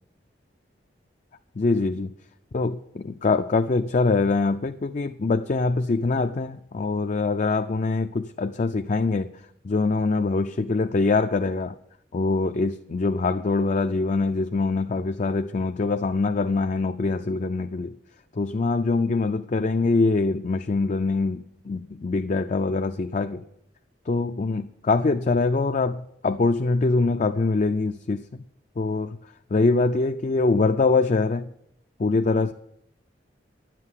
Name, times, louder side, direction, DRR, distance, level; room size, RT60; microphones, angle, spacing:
voice 1, 1.6-2.1 2.5-11.8 12.1-18.0 18.3-23.5 24.1-28.4 28.8-31.5 32.0-32.5, left 3 dB, 45° left, 0.4 m, -24 dB
10.5 x 7.6 x 9.7 m
head